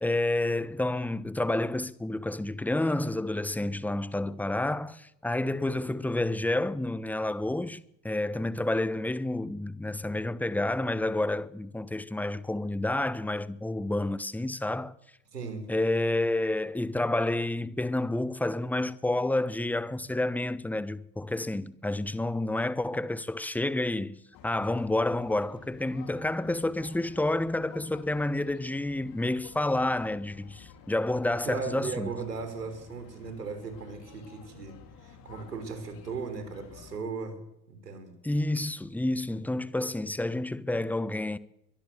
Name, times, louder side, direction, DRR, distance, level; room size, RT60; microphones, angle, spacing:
voice 1, 0.0-14.9 15.7-32.1 38.2-41.4, left 2 dB, 5° left, 1.0 m, -29 dB
voice 2, 15.3-15.7 31.5-37.4 37.7-38.1, right 5 dB, 80° right, 5.2 m, -37 dB
sound 1, 24.3-37.0, left 6 dB, 45° left, 3.8 m, -51 dB
23.5 x 21.5 x 7.5 m
figure-of-eight pair, 70°, 47 cm